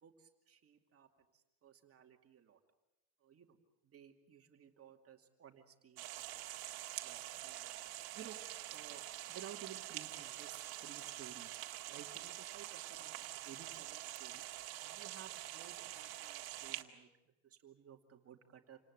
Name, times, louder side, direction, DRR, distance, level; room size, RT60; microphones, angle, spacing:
voice 1, 0.0-1.1 1.3-2.6 3.2-3.6 3.8-6.4 7.0-7.7 8.1-8.4 8.7-9.0 9.3-11.6 11.9-14.4 14.8-17.1 17.4-18.8, right 9 dB, 30° right, 4 dB, 2.5 m, -56 dB
sound 1, 6.0-16.8, right 15 dB, 50° right, 2.0 m, -46 dB
28.0 x 19.0 x 8.0 m, 0.95 s
cardioid pair, 135°, 47 cm